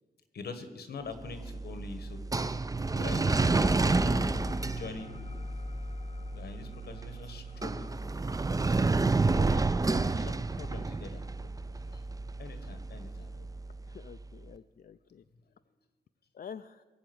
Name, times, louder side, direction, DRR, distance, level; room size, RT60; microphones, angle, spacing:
voice 1, 0.3-4.3 4.8-5.1 6.3-7.9 9.4-11.5 11.9-12.0 12.4-13.3, left 4 dB, 90° left, 9 dB, 1.4 m, -44 dB
sound 1, 1.2-14.3, right 3 dB, 20° right, 0.5 m, -30 dB
sound 2, 2.8-12.0, left 4 dB, 40° left, 0.8 m, -46 dB
voice 2, 13.8-15.2 16.3-16.8, left 7 dB, 65° left, 9 dB, 0.4 m, -48 dB
18.0 x 7.3 x 7.8 m, 1.4 s
cardioid pair, 60°, 16 cm